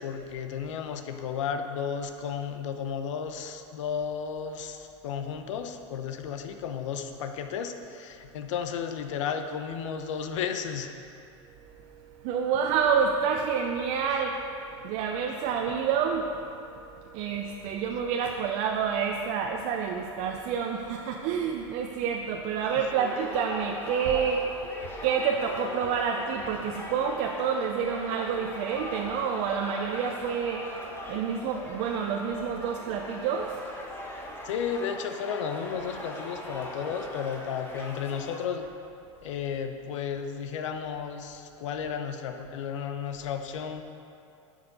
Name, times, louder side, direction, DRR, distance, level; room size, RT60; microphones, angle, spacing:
voice 1, 0.0-11.0 34.4-38.7 39.2-43.8, left 7 dB, 75° left, 7 dB, 0.9 m, -33 dB
voice 2, 11.6-34.5, right 6 dB, 50° right, 2 dB, 0.7 m, -29 dB
sound 1, 22.6-38.5, left 1 dB, 15° left, 1.5 m, -40 dB
10.0 x 6.5 x 5.2 m, 2.7 s
hypercardioid pair, 115°, 16 cm